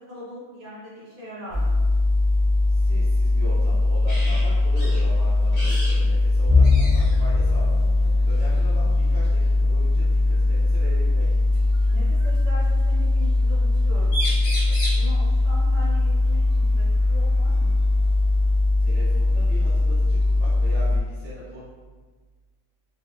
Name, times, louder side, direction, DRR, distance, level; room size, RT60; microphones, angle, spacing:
voice 1, 0.1-1.7 8.0-8.3 11.9-17.7, left 1 dB, 45° right, -9 dB, 1.3 m, -40 dB
sound 1, 1.5-21.0, left 2 dB, 45° left, 0.5 m, -20 dB
voice 2, 2.7-7.8 8.3-11.4 18.8-21.6, equal, 65° right, -10 dB, 1.1 m, -40 dB
sound 2, 4.1-4.4 4.8-5.0 5.5-6.0 6.2-6.3 6.6-7.2 8.4-8.6 10.3-10.4 11.5-12.4 13.7-13.8 14.0-15.1 17.0-17.1 17.5-18.5, equal, 70° left, 1.6 m, -33 dB
sound 3, 6.5-18.3 18.7-19.0 19.4-19.5 20.4-20.9, left 4 dB, 25° right, 0.6 m, -29 dB
4.3 x 2.2 x 2.4 m, 1.3 s
omnidirectional pair, 1.3 m